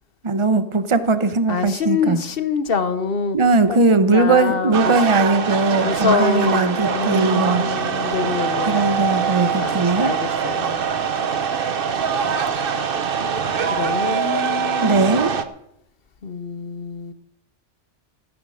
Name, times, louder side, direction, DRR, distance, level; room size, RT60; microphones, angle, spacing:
voice 1, 0.2-2.2 3.3-7.6 8.7-10.2 14.8-15.3, right 3 dB, 30° right, 0.9 m, -19 dB
voice 2, 1.5-4.9 5.8-9.1 9.6-10.8 12.6-12.9 13.7-15.3 16.2-17.1, left 5 dB, 55° left, 1.1 m, -26 dB
sound 1, 4.7-15.4, right 6 dB, 55° right, 1.0 m, -23 dB
15.5 x 10.0 x 6.4 m
omnidirectional pair, 1.2 m